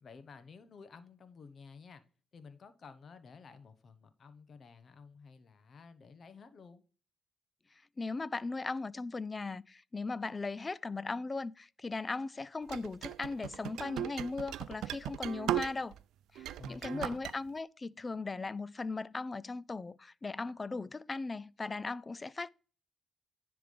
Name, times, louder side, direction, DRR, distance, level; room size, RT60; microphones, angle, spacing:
voice 1, 0.0-2.0 2.3-6.8 16.6-17.2, left 5 dB, 45° left, 1.0 m, -52 dB
voice 2, 8.0-15.9 16.3-22.5, left 3 dB, 25° left, 0.3 m, -38 dB
sound 1, 12.7-16.0 16.4-17.3, right 13 dB, 85° right, 0.3 m, -37 dB
10.0 x 3.4 x 5.3 m
cardioid pair, 90°, 0 cm